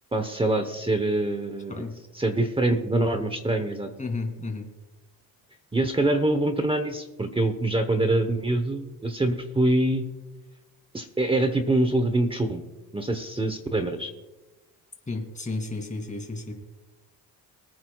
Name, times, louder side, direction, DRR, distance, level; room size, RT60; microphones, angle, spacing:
voice 1, 0.1-1.9 2.2-3.9 5.7-10.0 10.9-12.6 12.9-14.1, right 2 dB, 15° right, 7 dB, 0.9 m, -25 dB
voice 2, 4.0-4.7 15.1-16.5, left 3 dB, 20° left, 3 dB, 2.6 m, -32 dB
23.5 x 9.3 x 2.3 m, 1.1 s
cardioid pair, 110°, 39 cm